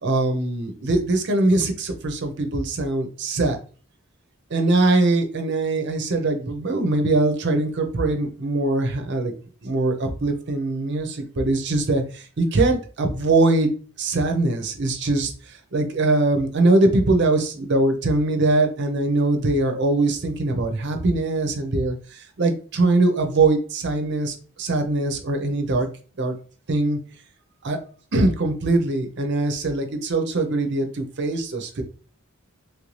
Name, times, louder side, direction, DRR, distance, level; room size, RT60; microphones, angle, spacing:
voice 1, 0.0-3.6 4.5-9.3 9.6-13.7 14.0-25.9 26.2-26.3 26.7-27.0 27.6-27.8 28.1-31.8, right 2 dB, 55° right, 5 dB, 0.6 m, -22 dB
3.2 x 2.6 x 3.1 m, 0.40 s
head